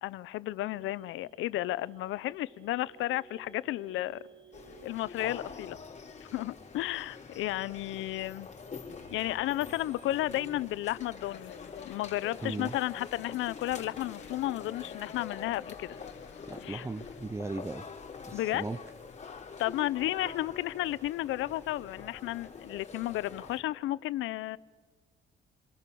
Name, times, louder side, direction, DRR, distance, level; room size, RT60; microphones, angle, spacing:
voice 1, 0.0-4.2 4.8-5.8 6.3-8.5 9.1-11.5 11.8-16.0 16.6-16.9 18.3-18.6 19.6-24.6, left 15 dB, 90° left, 19 dB, 0.7 m, -33 dB
sound 1, 0.6-10.6, right 3 dB, 70° right, 4.0 m, -58 dB
sound 2, 4.5-23.6, left 5 dB, 35° left, 3.9 m, -46 dB
sound 3, 11.2-17.2, left 9 dB, 70° left, 1.4 m, -51 dB
voice 2, 12.4-12.7 16.5-17.9 18.2-18.8, right 3 dB, 15° right, 14 dB, 0.7 m, -37 dB
29.0 x 23.0 x 7.0 m, 1.5 s
cardioid pair, 90°, 20 cm